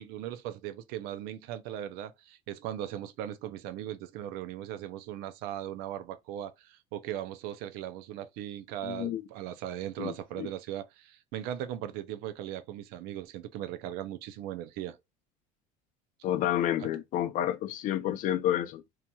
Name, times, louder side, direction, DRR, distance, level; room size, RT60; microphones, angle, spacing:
voice 1, 0.0-15.0 16.8-16.9, right 11 dB, 70° right, 0.5 m, -38 dB
voice 2, 8.8-9.2 10.0-10.5 16.2-18.8, left 11 dB, 55° left, 0.5 m, -30 dB
2.8 x 2.8 x 2.3 m
supercardioid pair, 100°, 17 cm